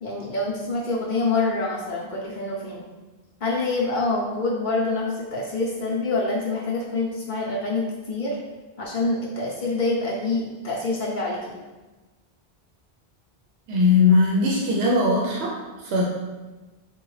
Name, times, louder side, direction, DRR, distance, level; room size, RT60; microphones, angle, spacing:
voice 1, 0.0-2.8 3.4-8.4 8.8-11.5, left 3 dB, 55° left, -4 dB, 0.6 m, -26 dB
voice 2, 13.7-16.0, left 3 dB, 85° right, -3 dB, 0.8 m, -20 dB
3.8 x 2.2 x 3.0 m, 1.2 s
omnidirectional pair, 1.0 m